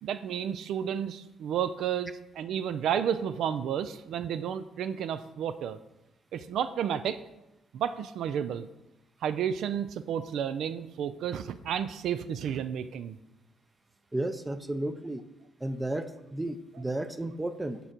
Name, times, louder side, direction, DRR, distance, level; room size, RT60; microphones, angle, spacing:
voice 1, 0.0-5.8 6.3-7.2 7.7-8.7 9.2-13.2, right 9 dB, 75° right, 12 dB, 0.3 m, -31 dB
voice 2, 14.1-15.2 15.6-17.8, right 1 dB, 15° right, 11 dB, 0.5 m, -33 dB
6.7 x 3.8 x 6.0 m, 0.94 s
cardioid pair, 90°, 0 cm